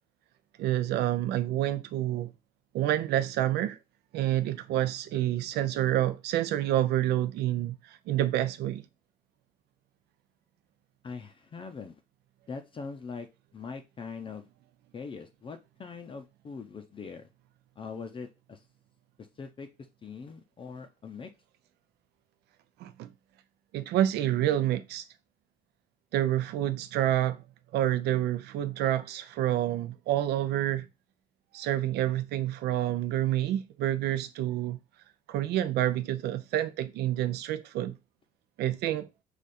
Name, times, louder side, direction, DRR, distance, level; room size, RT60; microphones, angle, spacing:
voice 1, 0.6-2.3 2.7-3.8 4.1-8.8 22.8-23.1 23.7-25.0 26.1-27.4 27.7-30.9 31.5-34.8 35.3-38.0 38.6-39.1, right 13 dB, 75° right, 0.5 m, -28 dB
voice 2, 11.0-12.0 12.5-13.3 13.5-14.5 14.9-17.3 17.8-18.6 19.2-19.7 20.0-21.3, left 5 dB, 30° left, 0.5 m, -42 dB
4.9 x 2.4 x 4.2 m
cardioid pair, 110°, 17 cm